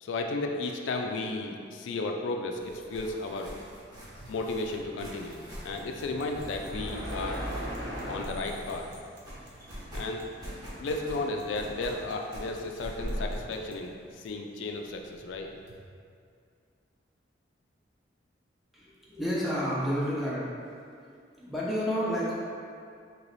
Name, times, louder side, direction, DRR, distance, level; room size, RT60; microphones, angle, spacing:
voice 1, 0.0-3.5 4.3-7.5 8.1-8.9 9.9-10.2 10.8-15.5, left 2 dB, 80° left, 3 dB, 0.3 m, -34 dB
sound 1, 2.6-9.0 9.2-13.4, equal, 20° right, 0.9 m, -40 dB
sound 2, 3.9-15.8, right 2 dB, 80° right, 0.7 m, -54 dB
voice 2, 18.7-20.4 21.0-22.3, equal, ahead, -7 dB, 0.6 m, -30 dB
3.1 x 2.9 x 4.0 m, 2.3 s
head